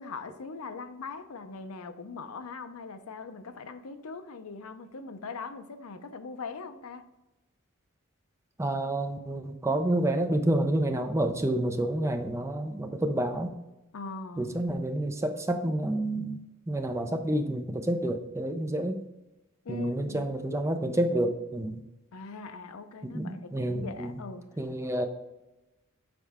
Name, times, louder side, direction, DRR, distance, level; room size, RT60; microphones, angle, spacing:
voice 1, 0.0-7.0 13.9-14.6 19.6-20.3 22.1-24.5, left 4 dB, 70° left, 0.5 m, -41 dB
voice 2, 8.6-13.5 14.4-16.4 16.7-19.0 19.7-21.8 23.1-24.2 24.6-25.1, right 1 dB, 15° right, 0.5 m, -29 dB
6.5 x 4.5 x 3.5 m
head